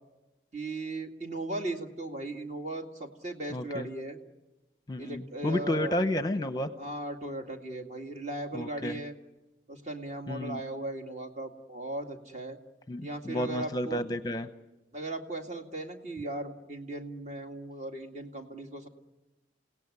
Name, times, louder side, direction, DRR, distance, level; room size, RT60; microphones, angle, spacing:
voice 1, 0.5-4.2 5.0-6.0 6.8-9.1 9.7-12.6 13.0-14.0 14.9-18.9, right 2 dB, 40° right, 4 dB, 2.2 m, -37 dB
voice 2, 3.5-3.8 4.9-6.7 8.5-9.0 10.3-10.6 12.9-14.5, left 1 dB, 20° left, 10 dB, 0.8 m, -31 dB
29.0 x 17.5 x 9.6 m, 1.1 s
head